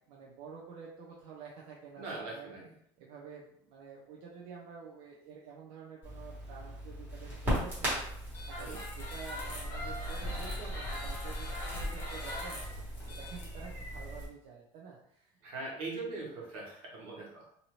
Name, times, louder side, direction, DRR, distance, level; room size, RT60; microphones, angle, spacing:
voice 1, 0.0-2.6 3.0-12.7 13.0-15.6, right 5 dB, 55° right, -4 dB, 0.5 m, -49 dB
voice 2, 2.0-2.7 8.6-8.8 15.4-17.5, right 3 dB, 80° right, -3 dB, 1.3 m, -41 dB
Crackle, 6.0-14.2, equal, 15° right, 1.3 m, -39 dB
sound 1, 8.3-14.2, left 1 dB, 20° left, 1.0 m, -40 dB
2.7 x 2.6 x 3.1 m, 0.71 s
cardioid pair, 175°, 13 cm